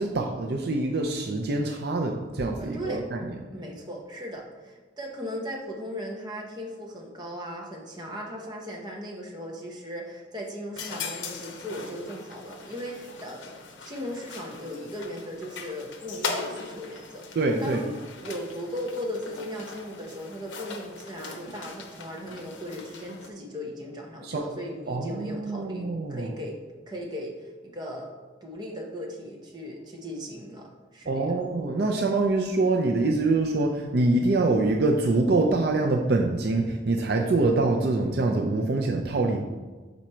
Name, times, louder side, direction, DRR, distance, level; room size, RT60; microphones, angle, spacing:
voice 1, 0.0-3.4 17.3-17.8 24.2-24.5 24.9-26.3 31.1-39.4, right 2 dB, 55° right, 2 dB, 0.5 m, -25 dB
voice 2, 2.6-3.1 3.5-17.3 17.6-17.9 18.2-26.6 26.9-28.1 28.4-31.3, equal, 20° right, -1 dB, 0.9 m, -37 dB
sound 1, 10.8-23.3, left 4 dB, 85° left, 0.7 m, -40 dB
6.1 x 4.1 x 4.3 m, 1.3 s
head